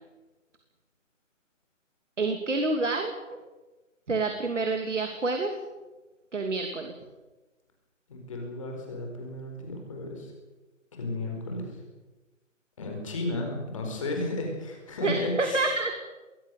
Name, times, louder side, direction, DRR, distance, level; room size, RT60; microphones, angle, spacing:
voice 1, 2.2-3.1 4.1-5.5 6.3-6.9 15.0-16.0, right 3 dB, 65° right, 5 dB, 3.0 m, -28 dB
voice 2, 8.1-10.3 11.0-11.8 12.8-15.7, left 2 dB, 25° left, 2 dB, 4.7 m, -33 dB
22.0 x 19.5 x 6.9 m, 1.2 s
hypercardioid pair, 175°, 39 cm